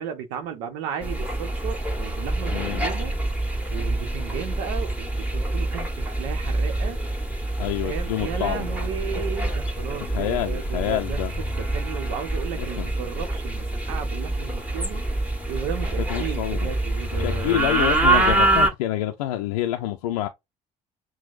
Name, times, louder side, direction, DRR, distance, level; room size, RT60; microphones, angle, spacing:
voice 1, 0.0-3.1 3.7-7.0 7.8-15.0 15.5-17.6, right 8 dB, 75° right, 0.7 m, -34 dB
sound 1, 1.0-18.7, right 2 dB, 10° right, 1.5 m, -26 dB
voice 2, 2.5-2.9 7.6-8.7 10.0-11.3 12.6-12.9 16.1-16.7 17.2-20.3, left 13 dB, 90° left, 0.4 m, -27 dB
6.1 x 2.1 x 2.4 m
hypercardioid pair, 60°, 18 cm